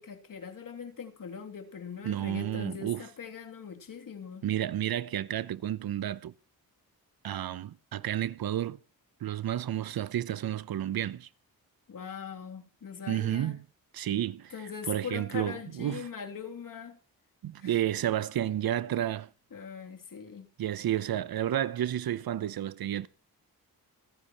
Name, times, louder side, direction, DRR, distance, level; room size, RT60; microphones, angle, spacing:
voice 1, 0.0-4.4 11.9-13.6 14.5-17.0 17.6-17.8 19.5-20.5, left 6 dB, 60° left, 3.0 m, -41 dB
voice 2, 2.0-3.0 4.4-6.3 7.2-8.8 9.2-11.3 13.1-13.6 13.9-14.5 14.9-16.1 17.4-19.3 20.6-23.1, right 11 dB, 70° right, 0.9 m, -31 dB
27.5 x 10.0 x 3.1 m
cardioid pair, 70°, 37 cm